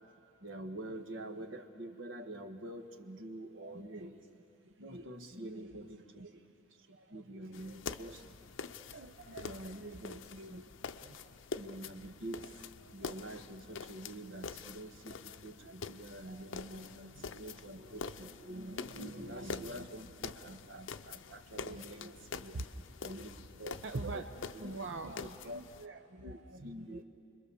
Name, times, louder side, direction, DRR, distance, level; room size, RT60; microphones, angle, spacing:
voice 1, 0.4-4.1 4.8-6.3 6.9-8.2 9.4-10.2 11.6-12.5 12.9-22.1 23.0-23.3 23.6-24.3 24.5-24.7 25.2-25.6 26.2-27.0, right 1 dB, 85° right, 6 dB, 1.4 m, -46 dB
voice 2, 3.6-4.2 4.6-5.8 6.2-6.5 6.8-7.9 8.9-11.4 12.8-13.1 15.3-15.8 16.2-16.8 17.1-17.3 19.2-19.6 21.7-23.3 23.8-24.3 24.6-27.0, right 2 dB, 70° right, 5 dB, 0.8 m, -47 dB
sound 1, 7.5-25.9, left 5 dB, 85° left, 0.6 m, -46 dB
29.5 x 22.0 x 7.0 m, 2.6 s
head